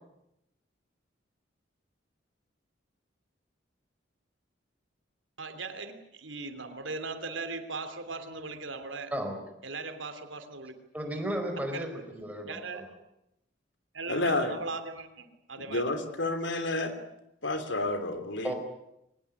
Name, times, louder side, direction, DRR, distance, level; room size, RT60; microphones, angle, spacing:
voice 1, 5.4-9.1 9.6-10.7 11.7-11.9 12.4-12.9 13.9-15.8, right 3 dB, 85° right, 8 dB, 3.1 m, -39 dB
voice 2, 10.9-12.9 18.4-18.6, equal, 10° right, 4 dB, 4.8 m, -34 dB
voice 3, 14.1-14.5 15.6-16.9 17.4-18.5, left 2 dB, 70° left, 9 dB, 3.2 m, -30 dB
23.0 x 20.0 x 9.6 m, 0.84 s
head